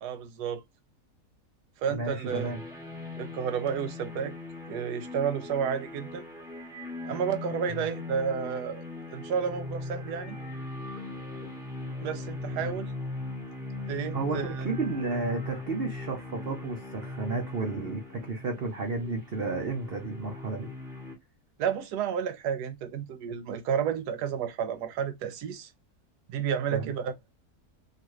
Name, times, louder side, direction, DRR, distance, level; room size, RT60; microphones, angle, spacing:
voice 1, 0.0-0.6 1.8-2.5 3.2-4.3 4.7-6.2 7.0-8.8 9.1-10.4 12.0-12.9 13.9-14.7 21.6-25.7 26.3-27.1, right 7 dB, 85° right, 1.2 m, -31 dB
voice 2, 1.9-2.6 7.7-7.9 12.5-12.7 14.1-20.7 26.7-26.9, right 3 dB, 55° right, 0.6 m, -32 dB
sound 1, 2.3-21.1, left 2 dB, 5° right, 0.8 m, -39 dB
2.8 x 2.5 x 3.0 m
omnidirectional pair, 1.7 m